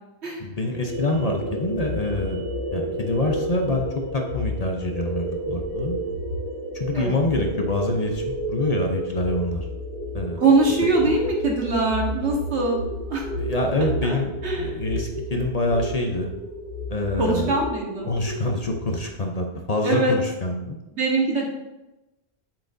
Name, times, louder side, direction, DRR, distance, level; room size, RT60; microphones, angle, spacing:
voice 1, 0.4-2.4 2.7-3.9 4.1-6.0 6.7-9.7 10.1-10.4 13.4-16.3 16.9-17.5 18.0-20.8, left 2 dB, 40° left, 2 dB, 0.8 m, -26 dB
sound 1, 0.9-19.1, equal, 50° right, 2.1 m, -31 dB
voice 2, 10.4-13.2 14.0-14.2 14.4-14.8 17.2-18.1 19.8-20.2 20.9-21.5, right 3 dB, 80° right, -1 dB, 1.8 m, -22 dB
7.5 x 7.4 x 2.6 m, 0.99 s
omnidirectional pair, 1.1 m